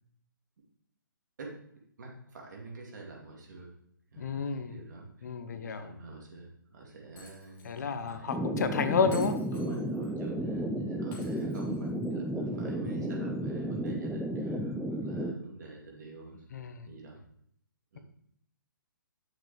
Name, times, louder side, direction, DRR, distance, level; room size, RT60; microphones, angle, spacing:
voice 1, 2.0-3.7 4.1-8.3 9.5-16.4 16.9-17.2 17.9-18.0, right 3 dB, 55° right, -1 dB, 2.5 m, -47 dB
voice 2, 4.2-4.8 5.2-5.9 7.6-9.3 16.5-16.9, left 5 dB, 55° left, 10 dB, 0.8 m, -31 dB
Shatter, 7.2-8.1 9.1-10.1 11.1-12.1, left 2 dB, 20° left, 1.6 m, -53 dB
sound 1, 8.3-15.3, right 1 dB, ahead, 0.4 m, -33 dB
8.1 x 6.2 x 3.4 m, 0.68 s
figure-of-eight pair, 135°, 11 cm